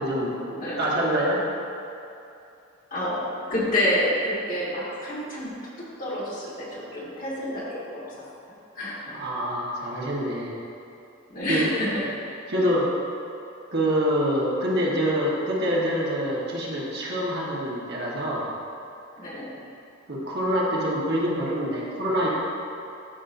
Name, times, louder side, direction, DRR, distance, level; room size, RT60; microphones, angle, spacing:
voice 1, 0.0-1.4 9.1-10.5 11.5-11.7 12.5-12.9 13.7-18.5 20.1-22.3, equal, 50° right, -5 dB, 1.6 m, -26 dB
voice 2, 0.6-0.9 2.9-5.5 5.8-8.2 8.7-9.2 11.3-12.0 19.2-19.6, left 1 dB, 40° left, -7 dB, 1.9 m, -28 dB
13.0 x 5.5 x 2.7 m, 2.7 s
head